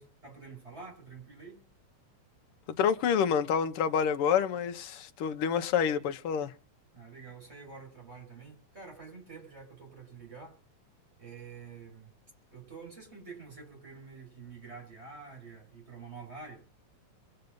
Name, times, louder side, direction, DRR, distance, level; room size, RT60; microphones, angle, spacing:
voice 1, 0.0-1.6 6.9-10.6 11.2-12.1 12.5-16.6, right 5 dB, 20° right, 6.2 m, -48 dB
voice 2, 2.8-6.5, left 7 dB, 60° left, 1.6 m, -28 dB
23.0 x 8.0 x 5.4 m
omnidirectional pair, 3.4 m